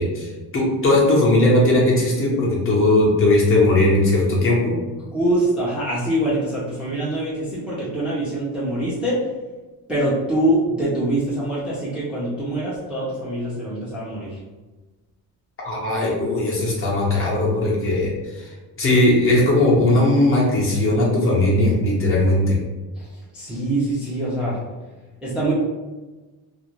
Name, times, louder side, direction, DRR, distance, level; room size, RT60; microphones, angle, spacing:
voice 1, 0.0-4.8 15.6-18.5 18.8-22.6, left 1 dB, 35° left, -4 dB, 0.7 m, -18 dB
voice 2, 5.1-9.2 9.9-14.4 23.0-23.1 23.3-24.6 25.2-25.5, right 1 dB, 5° right, -8 dB, 0.5 m, -24 dB
2.5 x 2.0 x 2.9 m, 1.2 s
cardioid pair, 155°, 39 cm